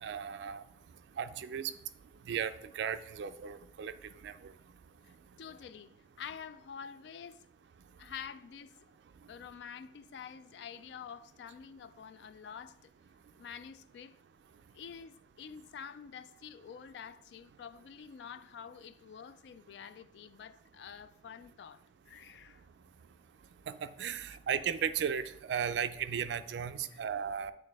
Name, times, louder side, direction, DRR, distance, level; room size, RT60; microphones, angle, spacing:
voice 1, 0.0-0.6 1.2-1.7 2.3-3.9 4.2-4.3 23.7-23.8 24.0-27.5, right 7 dB, 85° right, 0.3 m, -35 dB
voice 2, 5.0-7.5 8.0-8.9 9.3-12.9 13.4-14.2 14.7-22.6 26.9-27.0, left 7 dB, 80° left, 0.3 m, -48 dB
8.5 x 3.3 x 3.4 m
head